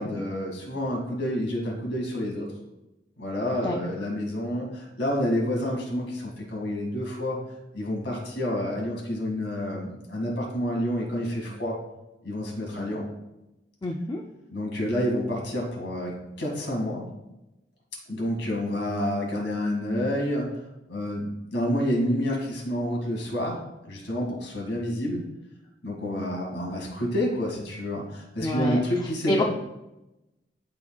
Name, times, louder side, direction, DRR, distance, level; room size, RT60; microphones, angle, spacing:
voice 1, 0.0-2.5 3.2-7.4 7.7-11.8 12.2-13.0 14.5-16.1 16.4-17.0 18.1-20.6 20.9-25.2 25.8-29.4, equal, 80° left, -1 dB, 2.2 m, -29 dB
voice 2, 13.8-14.2 28.4-28.8 29.3-29.4, left 1 dB, 25° left, 1 dB, 0.4 m, -27 dB
12.5 x 4.3 x 2.4 m, 0.96 s
head